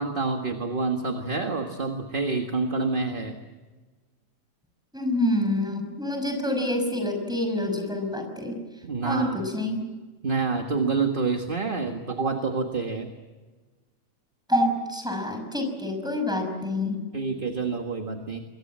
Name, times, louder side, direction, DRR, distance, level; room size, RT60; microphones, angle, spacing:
voice 1, 0.0-3.3 8.8-9.4 10.2-13.1 17.1-18.4, right 4 dB, 30° right, 4 dB, 1.7 m, -27 dB
voice 2, 4.9-8.6 9.0-9.8 14.5-17.0, left 1 dB, ahead, 5 dB, 5.6 m, -27 dB
27.0 x 22.5 x 7.5 m, 1.3 s
omnidirectional pair, 2.0 m